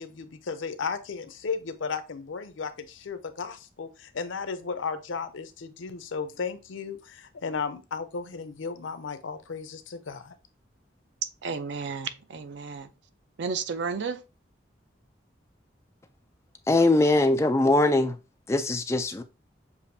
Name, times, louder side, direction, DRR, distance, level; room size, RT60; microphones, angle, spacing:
voice 1, 0.0-10.3, left 5 dB, 90° left, 0.6 m, -35 dB
voice 2, 11.4-12.9 13.4-14.2, right 5 dB, 70° right, 0.5 m, -32 dB
voice 3, 16.7-18.1 18.5-19.2, left 2 dB, 15° left, 0.3 m, -21 dB
6.9 x 2.5 x 2.6 m
head